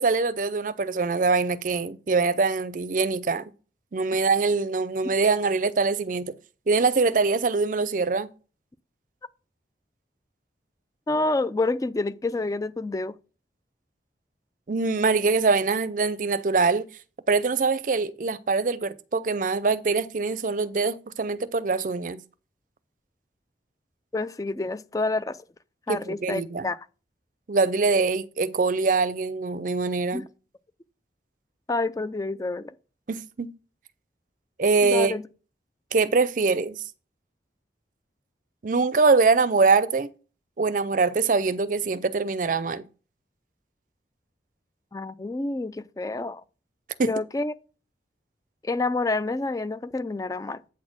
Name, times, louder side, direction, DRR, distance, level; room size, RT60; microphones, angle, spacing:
voice 1, 0.0-3.4 3.9-6.3 6.7-8.3 14.7-16.9 17.3-22.2 25.9-26.7 27.5-30.2 33.1-33.5 34.6-35.2 35.9-36.8 38.6-40.1 40.6-42.8 47.0-47.1, right 4 dB, 50° right, 0.5 m, -23 dB
voice 2, 11.1-13.2 24.1-25.4 25.9-26.8 30.1-30.2 31.7-32.7 34.8-35.2 44.9-46.4 47.0-47.5 48.6-50.6, left 2 dB, 20° left, 0.3 m, -28 dB
8.4 x 4.3 x 6.2 m
head